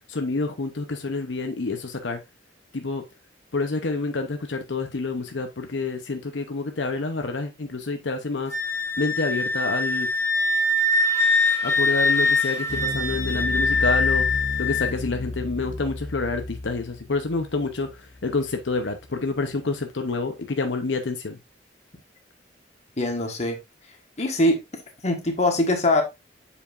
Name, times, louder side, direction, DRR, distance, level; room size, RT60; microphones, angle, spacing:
voice 1, 0.1-2.2 2.7-3.0 3.5-8.5 9.0-10.1 11.6-14.3 14.6-21.4, left 3 dB, 80° left, 0.8 m, -28 dB
Wind instrument woodwind instrument, 8.5-14.9, left 2 dB, 15° left, 2.1 m, -23 dB
sound 1, 12.7-19.1, left 2 dB, 55° left, 0.5 m, -33 dB
voice 2, 23.0-23.6 24.2-24.6 25.0-26.0, left 1 dB, 40° left, 1.4 m, -22 dB
7.3 x 5.1 x 2.5 m
head